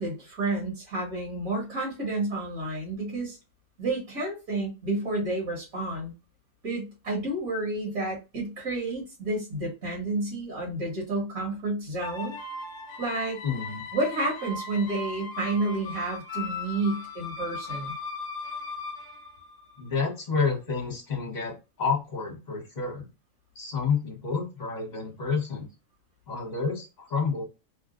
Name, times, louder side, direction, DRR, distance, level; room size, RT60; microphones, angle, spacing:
voice 1, 0.0-3.4 3.8-6.1 6.6-12.4 13.0-13.4 13.9-17.9, right 2 dB, 65° right, -3 dB, 2.0 m, -30 dB
sound 1, 12.0-20.0, left 4 dB, 60° left, 1.0 m, -38 dB
voice 2, 13.4-13.9 19.8-23.1 23.5-25.7 26.3-27.4, left 5 dB, 30° left, -1 dB, 1.3 m, -29 dB
3.6 x 2.4 x 2.5 m, 0.28 s
omnidirectional pair, 1.6 m